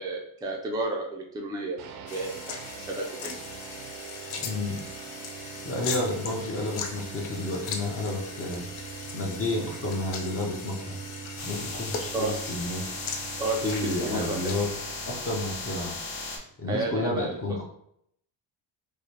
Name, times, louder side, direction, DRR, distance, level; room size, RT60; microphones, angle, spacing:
voice 1, 0.0-1.8 2.0-3.4 12.1-12.5 13.4-14.6 16.7-17.6, right 2 dB, 10° right, -1 dB, 0.3 m, -32 dB
sound 1, 1.8-16.6, right 7 dB, 80° right, 0.6 m, -43 dB
sound 2, 2.1-14.7, left 5 dB, 85° left, 0.7 m, -39 dB
voice 2, 4.4-4.8 5.6-8.7 9.1-11.0 11.4-12.9 13.4-14.7 15.1-15.9 16.6-17.6, left 2 dB, 30° left, 0 dB, 0.6 m, -31 dB
sound 3, 11.4-16.4, left 3 dB, 55° left, 1.1 m, -37 dB
4.8 x 2.1 x 2.8 m, 0.72 s
wide cardioid pair, 160°, 49 cm